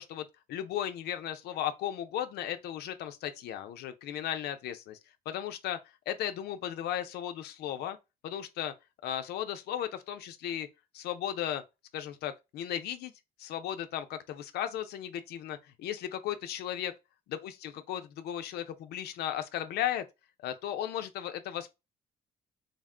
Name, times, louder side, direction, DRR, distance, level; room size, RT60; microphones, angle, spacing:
voice 1, 0.0-5.0 5.3-5.8 6.1-8.0 8.2-8.7 9.0-10.7 10.9-11.6 11.9-13.1 13.4-16.9 17.3-20.1 20.4-21.7, left 11 dB, 80° left, 0.5 m, -35 dB
3.9 x 2.2 x 3.6 m
cardioid pair, 120°, 17 cm